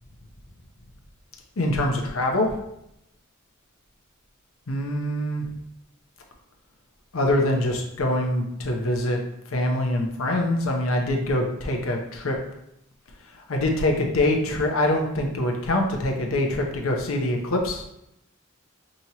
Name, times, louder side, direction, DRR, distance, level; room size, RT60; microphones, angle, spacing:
voice 1, 1.6-2.6 4.7-5.5 7.1-9.2 9.5-12.4 13.5-17.9, left 1 dB, 85° left, 2 dB, 0.7 m, -24 dB
5.1 x 2.9 x 2.9 m, 0.81 s
head